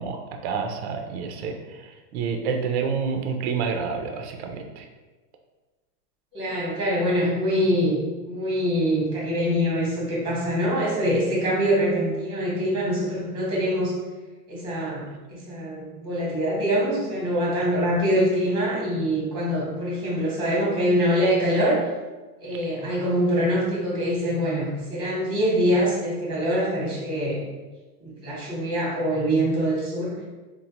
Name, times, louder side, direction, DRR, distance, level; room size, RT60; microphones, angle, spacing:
voice 1, 0.0-4.9, right 5 dB, 45° right, 4 dB, 0.4 m, -29 dB
voice 2, 6.3-13.9 14.5-15.0 15.3-21.9 22.4-27.4 28.0-30.2, equal, 10° right, -5 dB, 1.0 m, -24 dB
4.1 x 2.2 x 2.8 m, 1.2 s
supercardioid pair, 145°, 49 cm